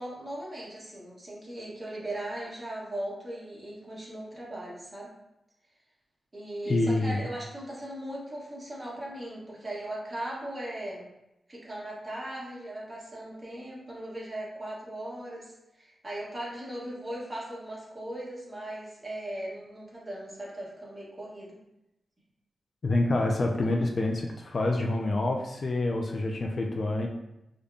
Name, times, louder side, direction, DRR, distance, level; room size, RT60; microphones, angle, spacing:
voice 1, 0.0-5.1 6.3-11.1 11.5-21.6, right 1 dB, 30° right, -5 dB, 1.3 m, -38 dB
voice 2, 6.7-7.2 22.8-27.1, left 2 dB, 50° left, 2 dB, 0.4 m, -27 dB
5.0 x 2.2 x 2.6 m, 0.89 s
cardioid pair, 85°, 0 cm